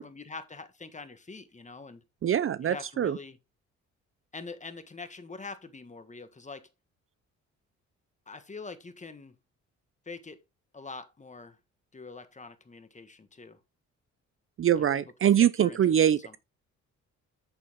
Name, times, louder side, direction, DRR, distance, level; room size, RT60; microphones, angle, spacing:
voice 1, 0.0-2.0 2.6-3.4 4.3-6.7 8.3-9.3 10.0-10.4 10.7-11.6 11.9-13.6 14.7-15.0 15.4-15.8 16.2-16.4, left 4 dB, 25° left, 1.6 m, -44 dB
voice 2, 2.2-3.2 14.6-16.4, right 10 dB, 45° right, 0.6 m, -24 dB
8.3 x 7.1 x 3.6 m
cardioid pair, 90°, 30 cm